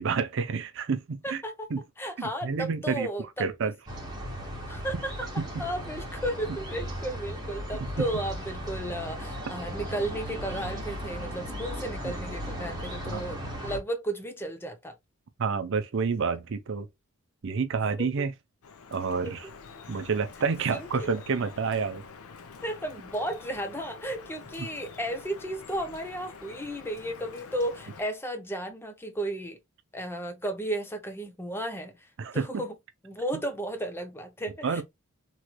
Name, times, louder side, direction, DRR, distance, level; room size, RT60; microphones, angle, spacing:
voice 1, 0.0-1.4 1.7-1.8 2.2-3.1 3.4-3.7 4.9-5.0 5.4-5.6 8.0-8.1 12.0-12.1 13.0-13.2 15.4-16.9 17.4-18.3 18.9-19.5 19.9-22.0 24.6-24.7 32.2-32.7 33.3-33.4 34.6-34.8, right 5 dB, 60° right, 0.5 m, -29 dB
voice 2, 1.2-1.7 2.0-3.7 4.7-5.3 5.6-15.0 18.0-18.1 19.2-19.3 20.7-21.1 22.6-29.6 29.9-32.1 32.3-32.7 33.0-34.8, right 1 dB, 10° left, 0.5 m, -34 dB
sound 1, 3.9-13.8, equal, 20° right, 1.3 m, -36 dB
Drip, 18.6-28.0, left 5 dB, 90° left, 0.7 m, -47 dB
3.1 x 3.0 x 2.2 m
head